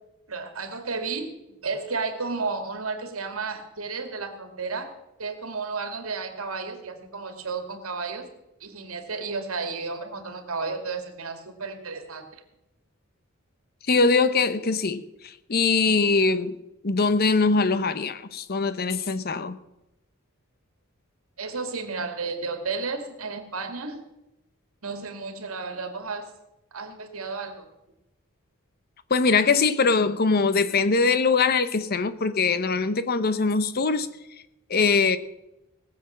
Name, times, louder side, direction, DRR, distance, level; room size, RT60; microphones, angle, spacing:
voice 1, 0.3-1.3 1.6-4.9 5.2-8.3 8.6-12.4 21.4-24.0 24.8-26.3 26.7-27.7, right 4 dB, 80° right, 6 dB, 2.2 m, -32 dB
voice 2, 13.9-16.6 16.8-19.6 29.1-34.1 34.7-35.2, left 4 dB, 45° left, 13 dB, 0.8 m, -22 dB
19.0 x 7.6 x 7.2 m, 0.92 s
head